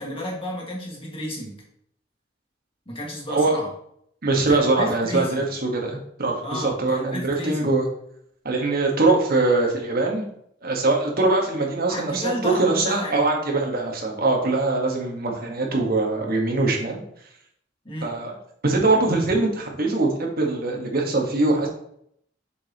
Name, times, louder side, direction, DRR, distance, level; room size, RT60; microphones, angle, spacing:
voice 1, 0.0-1.6 2.9-3.7 4.5-5.4 6.4-7.7 11.9-13.2 17.9-18.1, equal, 30° left, -2 dB, 1.8 m, -32 dB
voice 2, 4.2-7.9 8.4-10.3 10.6-17.0 18.0-18.3 18.6-21.7, right 2 dB, 55° right, 1 dB, 1.4 m, -22 dB
7.0 x 5.2 x 2.9 m, 0.70 s
head